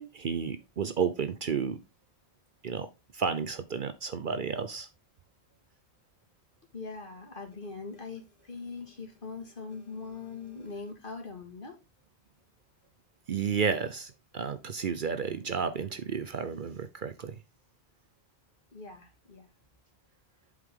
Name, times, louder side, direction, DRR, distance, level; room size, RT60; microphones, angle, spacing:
voice 1, 0.0-1.8 2.6-2.9 3.1-4.9 13.3-17.4, right 6 dB, 55° right, 0.8 m, -32 dB
voice 2, 6.7-11.8 18.7-19.5, left 4 dB, 50° left, 2.2 m, -42 dB
8.0 x 5.2 x 3.7 m
omnidirectional pair, 1.1 m